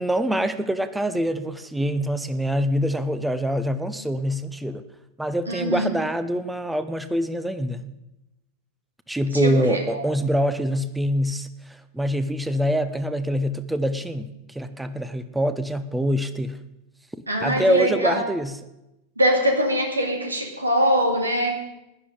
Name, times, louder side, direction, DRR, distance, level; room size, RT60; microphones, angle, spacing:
voice 1, 0.0-4.8 5.2-7.9 9.1-11.5 11.9-16.6 17.4-18.5, equal, 5° right, 11 dB, 0.9 m, -25 dB
voice 2, 5.5-5.9 9.3-10.1 17.3-18.2 19.2-21.6, equal, 80° right, 3 dB, 2.4 m, -23 dB
15.5 x 11.5 x 5.1 m, 0.92 s
figure-of-eight pair, 90°, 0 cm